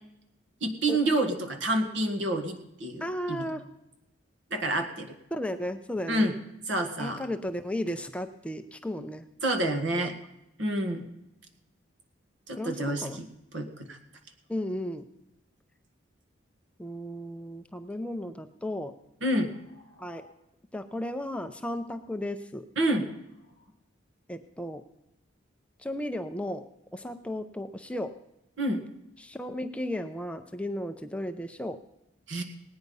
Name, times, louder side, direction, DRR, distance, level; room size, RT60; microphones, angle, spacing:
voice 1, 0.6-3.5 4.5-5.1 6.1-6.3 6.7-7.2 9.4-10.1 10.6-11.0 12.5-13.2 13.5-14.0 19.2-19.5 22.8-23.0 28.6-28.8 32.3-32.4, right 1 dB, 70° right, 6 dB, 1.6 m, -28 dB
voice 2, 3.0-3.7 5.3-6.3 7.0-9.3 9.6-10.1 12.6-13.2 14.5-15.1 16.8-19.0 20.0-20.3 20.7-22.7 24.3-24.8 25.8-26.7 26.9-28.2 29.2-31.8, left 1 dB, 5° left, 7 dB, 0.5 m, -34 dB
18.0 x 9.3 x 5.4 m, 0.87 s
head